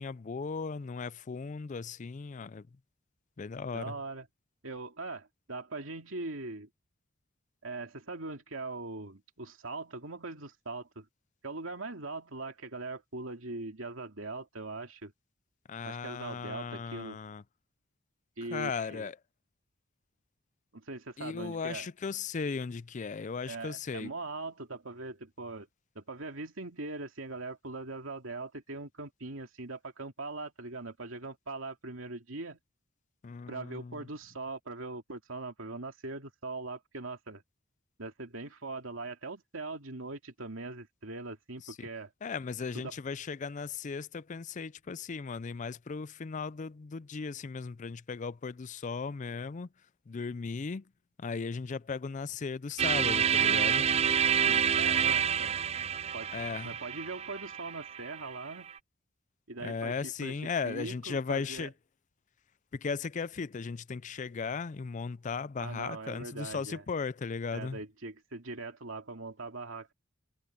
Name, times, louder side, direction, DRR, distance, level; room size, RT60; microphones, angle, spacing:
voice 1, 0.0-2.7 3.4-4.0 15.7-17.4 18.5-19.2 21.2-24.1 33.2-34.1 41.7-41.9 42.2-49.7 50.1-50.8 51.2-53.9 56.3-56.8 59.6-61.7 62.7-67.8, left 5 dB, 35° left, 0.4 m, -37 dB
voice 2, 3.7-4.3 4.6-6.7 7.6-11.1 11.4-15.1 15.8-17.2 18.4-19.1 20.7-21.9 23.5-25.7 25.9-32.6 33.5-37.4 38.0-42.1 42.7-42.9 54.4-55.6 56.1-56.3 56.6-58.7 59.5-60.4 60.6-61.7 65.6-66.8 67.5-69.9, right 3 dB, 75° right, 2.5 m, -41 dB
sound 1, 52.8-58.7, right 8 dB, 30° right, 0.4 m, -28 dB
head